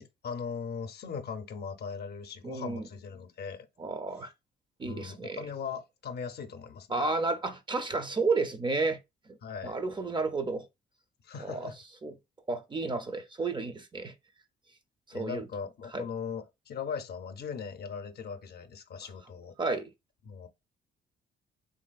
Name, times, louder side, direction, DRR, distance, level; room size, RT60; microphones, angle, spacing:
voice 1, 0.0-3.7 4.8-7.0 9.4-9.8 11.2-11.8 15.1-19.6 20.2-20.5, left 6 dB, 55° left, 0.5 m, -39 dB
voice 2, 2.4-2.9 3.8-4.3 4.8-5.5 6.9-9.0 9.6-10.7 11.4-11.7 12.0-12.1 12.5-14.1 15.1-15.4 15.9-16.0 19.6-19.9, right 3 dB, 25° right, 0.4 m, -31 dB
3.2 x 2.6 x 2.3 m
cardioid pair, 90°, 20 cm